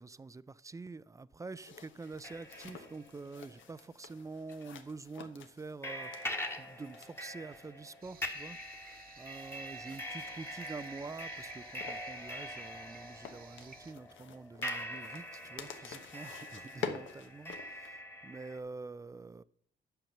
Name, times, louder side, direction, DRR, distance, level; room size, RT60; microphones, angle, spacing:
voice 1, 0.0-19.4, right 3 dB, 15° right, 0.3 m, -47 dB
sound 1, 1.6-17.9, left 6 dB, 75° left, 1.1 m, -49 dB
sound 2, 2.0-4.1 4.5-4.6 5.8-18.6, left 1 dB, 10° left, 1.3 m, -44 dB
sound 3, 8.0-13.9, right 5 dB, 50° right, 1.0 m, -57 dB
9.0 x 5.8 x 6.6 m
cardioid pair, 90°, 20 cm